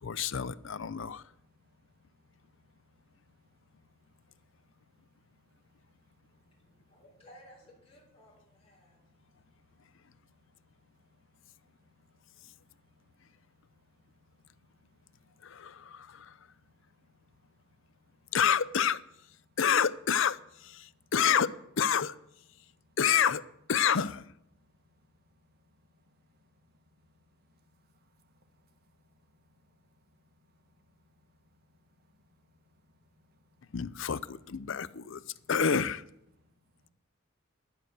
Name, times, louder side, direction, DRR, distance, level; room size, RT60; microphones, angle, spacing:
voice 1, 0.0-1.2 15.4-16.4 18.3-19.0 19.6-22.1 23.0-23.4 23.7-24.3 33.7-35.2 35.5-36.0, left 7 dB, 65° left, 0.6 m, -28 dB
voice 2, 1.6-2.0 2.3-5.9 6.2-6.8 8.8-10.9 11.3-12.5 12.9-15.3 15.8-16.8 17.1-18.3 19.5-19.6 20.9-21.1 22.5-23.0 24.5-26.4 27.0-27.2 27.5-28.7 29.1-33.8 35.3-35.4 36.4-36.5, left 1 dB, 50° right, 1.4 m, -68 dB
voice 3, 6.3-9.0, equal, 30° left, 4.2 m, -58 dB
11.0 x 10.5 x 6.6 m
head